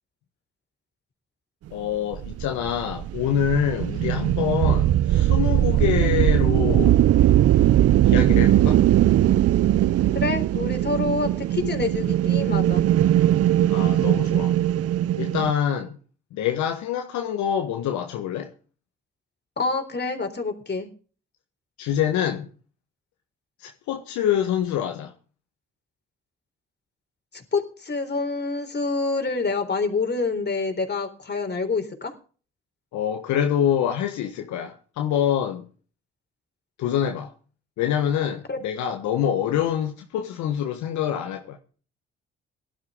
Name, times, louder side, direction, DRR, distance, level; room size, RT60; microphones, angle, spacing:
voice 1, 1.7-7.0 8.0-8.8 13.7-14.5 15.2-15.9 16.3-18.5 21.8-22.5 23.6-25.1 32.9-35.7 36.8-37.3 37.8-41.6, left 9 dB, 70° left, 1.5 m, -25 dB
sound 1, 2.1-15.5, right 12 dB, 55° right, 0.6 m, -20 dB
voice 2, 10.1-12.8 19.6-20.9 27.3-32.1 38.5-38.6, left 3 dB, 35° left, 3.9 m, -27 dB
18.0 x 12.0 x 3.8 m
hypercardioid pair, 50°, 30 cm